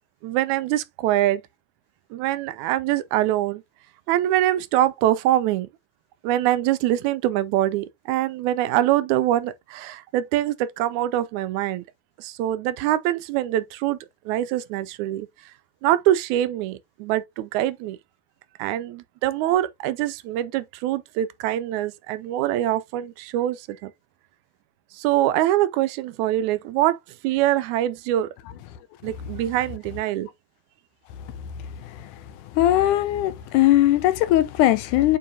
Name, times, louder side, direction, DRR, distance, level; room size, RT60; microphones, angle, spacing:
voice 1, 0.2-1.4 2.1-3.6 4.1-5.7 6.2-11.8 12.2-14.0 14.3-15.3 15.8-18.0 18.6-23.9 24.9-27.0 27.2-28.3 29.0-30.3, right 13 dB, 80° right, 1.9 m, -24 dB
voice 2, 32.6-35.2, left 14 dB, 80° left, 2.2 m, -19 dB
7.7 x 4.7 x 2.8 m
omnidirectional pair, 3.6 m